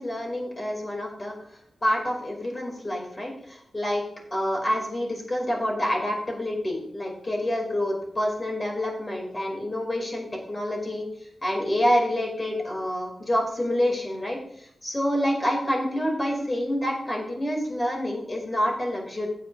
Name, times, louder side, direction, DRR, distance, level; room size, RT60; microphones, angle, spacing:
voice 1, 0.0-1.3 1.8-4.0 4.3-11.1 11.4-19.3, equal, 25° left, 0 dB, 2.7 m, -27 dB
15.5 x 7.9 x 2.6 m, 0.68 s
wide cardioid pair, 125°, 0 cm